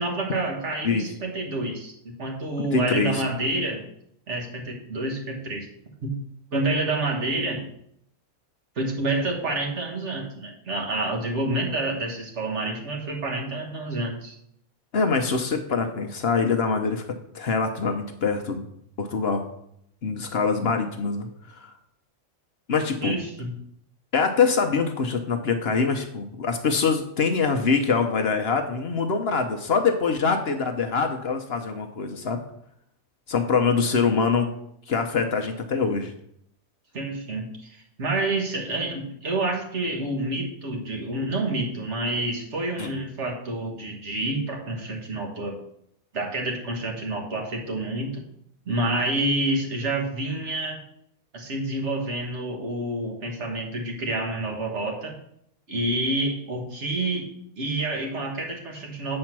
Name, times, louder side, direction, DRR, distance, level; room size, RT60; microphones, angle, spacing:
voice 1, 0.0-3.9 4.3-5.7 6.0-6.1 6.5-7.6 8.8-14.4 23.0-23.5 36.9-45.6 46.1-48.2 48.7-50.8 51.3-55.1 55.7-59.2, right 2 dB, 55° right, 1 dB, 1.7 m, -28 dB
voice 2, 2.7-3.2 14.9-18.6 19.0-19.5 20.0-21.7 22.7-23.2 24.1-32.4 33.3-34.5 34.9-36.1 42.8-42.9, left 5 dB, 55° left, 5 dB, 0.8 m, -24 dB
7.6 x 4.3 x 5.9 m, 0.72 s
omnidirectional pair, 1.5 m